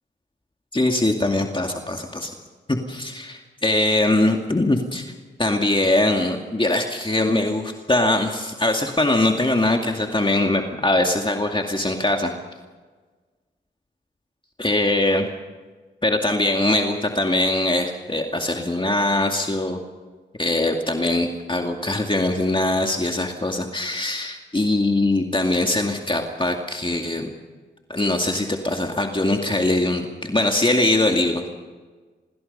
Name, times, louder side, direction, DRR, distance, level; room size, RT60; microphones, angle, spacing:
voice 1, 0.7-2.3 2.7-5.1 5.4-12.3 14.6-15.3 16.0-19.8 20.4-27.3 27.9-31.5, left 2 dB, 25° left, 3 dB, 2.3 m, -22 dB
26.0 x 20.5 x 5.5 m, 1.4 s
cardioid pair, 45°, 19 cm